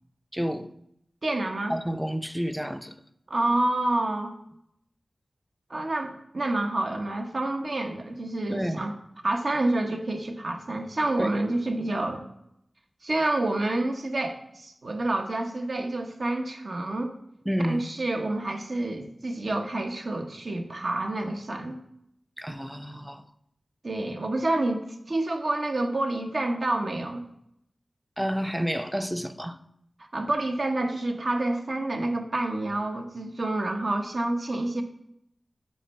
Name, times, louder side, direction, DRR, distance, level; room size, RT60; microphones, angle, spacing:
voice 1, 0.3-0.7 1.7-3.0 8.5-8.8 11.2-11.4 17.5-17.8 22.4-23.2 28.2-29.6, equal, 5° right, 10 dB, 0.5 m, -30 dB
voice 2, 1.2-1.7 3.3-4.3 5.7-8.9 9.2-12.2 13.0-17.1 17.6-21.8 23.8-27.2 30.1-34.8, right 2 dB, 60° right, 4 dB, 1.0 m, -28 dB
8.3 x 4.4 x 5.5 m, 0.76 s
wide cardioid pair, 80°, 0 cm